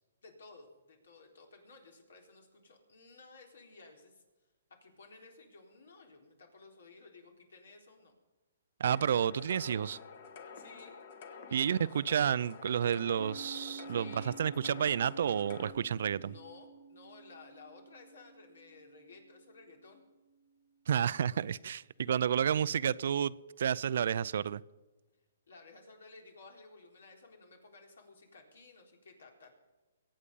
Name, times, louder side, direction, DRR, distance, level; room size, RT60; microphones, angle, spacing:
voice 1, 0.2-4.2 4.7-8.1 10.5-11.0 11.4-12.0 13.9-14.4 16.2-20.0 25.5-29.6, left 3 dB, 80° left, 4.0 m, -55 dB
voice 2, 8.8-10.0 11.5-16.3 20.9-24.6, right 8 dB, 60° right, 0.5 m, -30 dB
sound 1, 8.9-15.7, left 5 dB, 50° left, 1.8 m, -49 dB
Piano, 13.2-20.4, right 4 dB, 10° left, 1.6 m, -51 dB
22.5 x 8.7 x 5.4 m
hypercardioid pair, 155°, 0 cm